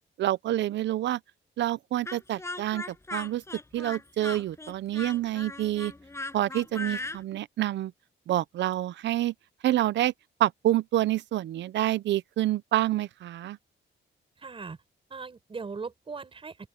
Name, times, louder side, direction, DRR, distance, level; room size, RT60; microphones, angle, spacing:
voice 1, 0.2-1.2 1.6-2.8 3.1-3.4 3.7-5.9 6.3-7.9 8.3-9.3 9.6-10.1 10.4-13.6, right 14 dB, 65° right, 0.5 m, -27 dB
Speech, 2.1-7.2, left 2 dB, 15° left, 7.7 m, -38 dB
voice 2, 14.4-14.8 15.1-16.7, right 4 dB, 25° right, 5.2 m, -39 dB
open air
wide cardioid pair, 165°, 20 cm